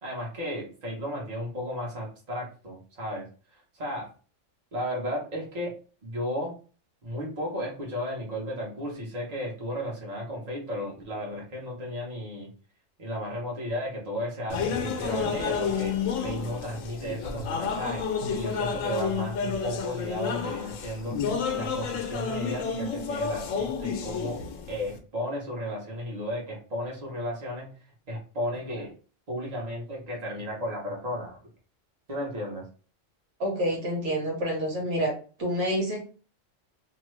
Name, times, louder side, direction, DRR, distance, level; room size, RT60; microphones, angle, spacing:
voice 1, 0.0-4.1 4.7-5.7 6.0-6.6 7.0-12.5 13.0-21.2 21.5-24.4 24.7-27.8 28.1-28.9 29.3-31.4 32.1-32.7, equal, 35° right, -3 dB, 1.1 m, -34 dB
sound 1, 14.5-25.0, left 6 dB, 90° left, 1.0 m, -30 dB
voice 2, 33.4-35.1 35.4-36.1, equal, 70° right, -1 dB, 1.3 m, -28 dB
2.9 x 2.3 x 3.1 m, 0.38 s
omnidirectional pair, 1.3 m